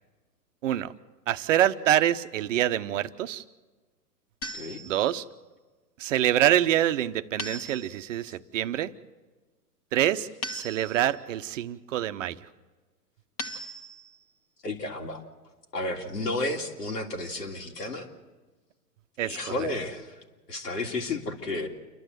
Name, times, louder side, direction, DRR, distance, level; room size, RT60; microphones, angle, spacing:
voice 1, 1.3-3.4 4.8-5.2 6.0-8.9 9.9-12.4 19.2-19.4, right 12 dB, 50° right, 11 dB, 0.9 m, -26 dB
sound 1, 4.4-5.3 7.4-8.3 10.4-11.3 13.4-14.3, left 1 dB, 30° left, 1.7 m, -39 dB
voice 2, 14.6-15.2 15.7-18.1 19.2-20.2 20.5-21.8, left 2 dB, 80° left, 1 dB, 3.1 m, -32 dB
28.5 x 12.0 x 8.0 m, 1.3 s
hypercardioid pair, 115°, 47 cm